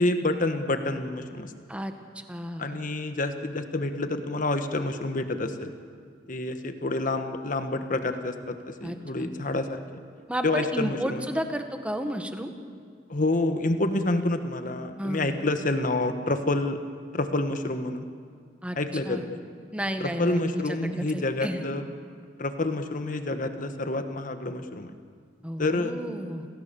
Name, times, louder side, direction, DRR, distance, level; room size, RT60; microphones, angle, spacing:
voice 1, 0.0-1.5 2.6-5.7 6.3-9.8 10.4-11.2 13.1-16.8 17.1-18.0 18.8-19.4 20.0-21.9 22.4-24.9 25.6-25.9, left 2 dB, 50° left, 8 dB, 1.3 m, -28 dB
voice 2, 1.7-2.7 8.8-9.3 10.3-12.5 15.0-15.4 18.6-18.8 19.0-19.3 19.7-21.6 25.4-26.5, equal, 5° right, 6 dB, 1.4 m, -32 dB
29.5 x 17.0 x 7.0 m, 2.1 s
head